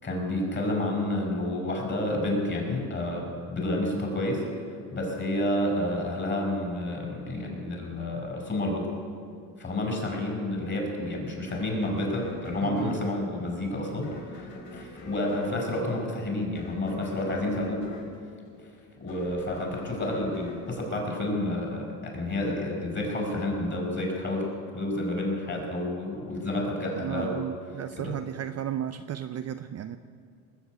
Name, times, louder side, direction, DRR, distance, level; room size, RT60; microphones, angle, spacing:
voice 1, 0.0-4.4 4.9-8.9 9.6-17.8 19.0-24.5 24.7-27.4 28.0-28.1, left 1 dB, 25° left, 1 dB, 5.5 m, -30 dB
sound 1, 11.5-21.7, left 2 dB, 65° left, 3.8 m, -46 dB
voice 2, 12.6-13.0 26.9-30.0, right 10 dB, 35° right, 9 dB, 0.6 m, -34 dB
19.5 x 8.0 x 8.2 m, 2.2 s
supercardioid pair, 95°, 44 cm